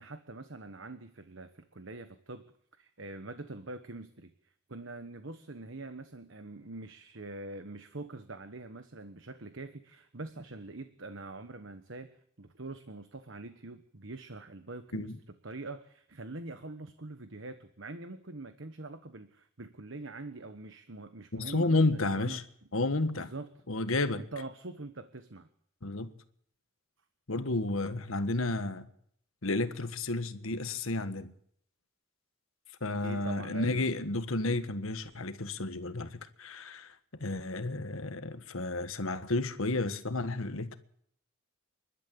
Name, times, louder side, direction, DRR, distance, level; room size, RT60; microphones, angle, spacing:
voice 1, 0.0-2.4 2.8-12.1 12.4-15.1 15.4-22.4 23.1-23.5 24.2-25.5 33.0-33.9, right 2 dB, 60° right, 1.2 m, -44 dB
voice 2, 21.3-22.4 22.7-23.3 23.7-24.2 25.8-26.1 27.3-28.9 29.4-31.3 32.8-36.9 37.2-40.7, left 2 dB, 75° left, 1.5 m, -31 dB
28.0 x 12.0 x 8.7 m
head